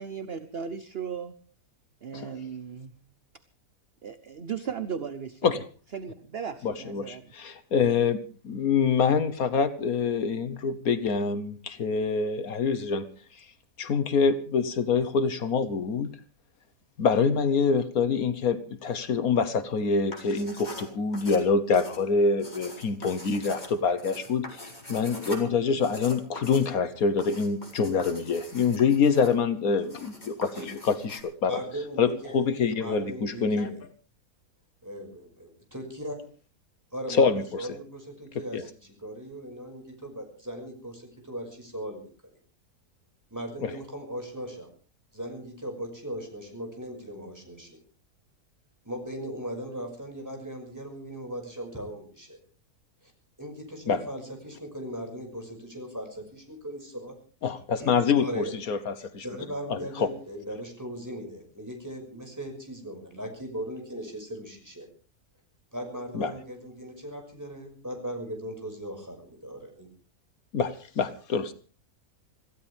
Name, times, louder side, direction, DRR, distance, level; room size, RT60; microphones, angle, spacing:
voice 1, 0.0-1.3 2.0-2.9 4.0-5.6 5.9-7.3, right 7 dB, 45° right, 12 dB, 1.0 m, -36 dB
voice 2, 6.6-8.2 8.4-13.0 13.8-16.1 17.0-30.6 30.9-31.5 32.0-33.7 37.1-37.7 38.5-38.6 43.6-43.7 53.9-54.0 57.4-59.2 59.7-60.1 66.1-66.3 70.5-71.5, left 5 dB, 70° left, 12 dB, 1.6 m, -25 dB
sound 1, 20.0-31.2, left 1 dB, 30° left, 4.8 m, -43 dB
voice 3, 31.5-33.8 34.8-36.2 36.9-42.3 43.3-44.7 45.1-47.8 48.9-52.4 53.0-53.1 53.4-57.1 57.8-58.5 59.2-64.9 65.7-69.9, equal, 10° right, 3 dB, 5.9 m, -38 dB
25.5 x 16.0 x 3.5 m, 0.38 s
omnidirectional pair, 1.6 m